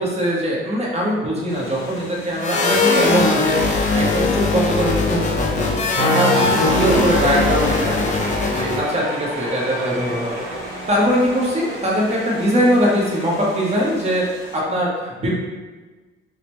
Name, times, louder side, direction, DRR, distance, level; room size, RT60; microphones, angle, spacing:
voice 1, 0.0-3.6 3.9-6.3 6.6-10.4 10.9-15.3, equal, 30° right, -4 dB, 0.9 m, -21 dB
sound 1, 1.5-14.6, left 3 dB, 75° left, 0.7 m, -41 dB
sound 2, 2.4-9.0, left 4 dB, 35° left, 0.4 m, -20 dB
Cheering, 5.9-13.0, right 1 dB, 70° right, 0.7 m, -27 dB
5.0 x 2.0 x 3.0 m, 1.3 s
cardioid pair, 160°, 21 cm